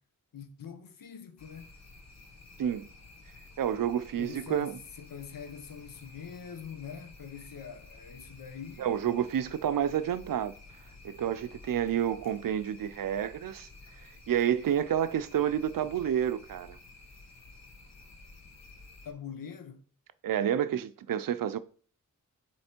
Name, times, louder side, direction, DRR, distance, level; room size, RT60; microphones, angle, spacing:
voice 1, 0.3-1.7 4.2-8.9 19.0-19.8, left 7 dB, 85° left, 0.8 m, -44 dB
sound 1, 1.4-19.1, left 3 dB, 55° left, 1.1 m, -52 dB
voice 2, 3.6-4.7 8.8-10.5 11.0-13.7 14.3-16.8 20.2-21.6, right 9 dB, 85° right, 0.5 m, -29 dB
7.8 x 3.2 x 4.3 m
wide cardioid pair, 95°, 33 cm